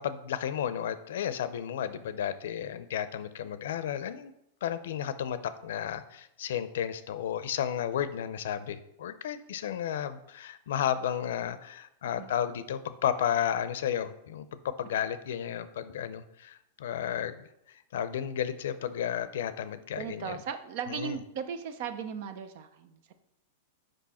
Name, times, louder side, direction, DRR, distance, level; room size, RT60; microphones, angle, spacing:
voice 1, 0.0-4.3 4.6-20.4 20.9-21.2, left 9 dB, 75° left, 13 dB, 0.6 m, -33 dB
voice 2, 20.0-23.1, right 7 dB, 55° right, 10 dB, 0.7 m, -37 dB
6.2 x 5.3 x 4.2 m, 0.80 s
hypercardioid pair, 135°, 0 cm